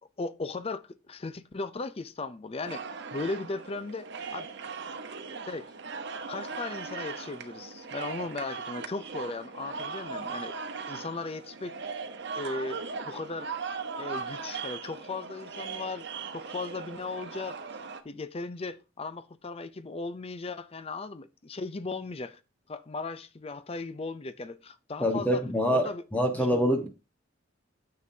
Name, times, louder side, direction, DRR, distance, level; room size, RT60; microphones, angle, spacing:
voice 1, 0.2-2.8 3.1-4.1 4.3-4.5 5.4-5.7 6.3-10.6 10.9-11.8 12.3-13.5 14.0-16.1 16.3-17.6 18.0-22.4 22.7-26.0 26.3-26.5, left 3 dB, 30° left, 0.5 m, -37 dB
sound 1, 2.6-18.0, right 5 dB, 60° right, 0.9 m, -39 dB
voice 2, 25.0-26.9, equal, 10° left, 1.2 m, -25 dB
9.4 x 7.6 x 2.8 m
head